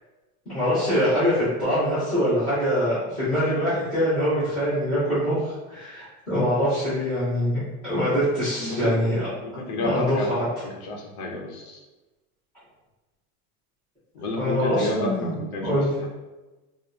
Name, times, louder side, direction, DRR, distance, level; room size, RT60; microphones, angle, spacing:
voice 1, 0.5-9.2 9.8-10.2 14.4-15.3 15.6-15.9, equal, 5° left, -21 dB, 0.4 m, -24 dB
voice 2, 8.6-8.9 9.4-10.3 10.6-11.8 14.1-16.1, left 2 dB, 80° left, -1 dB, 0.8 m, -31 dB
3.2 x 2.0 x 2.4 m, 1.1 s
supercardioid pair, 180°, 45 cm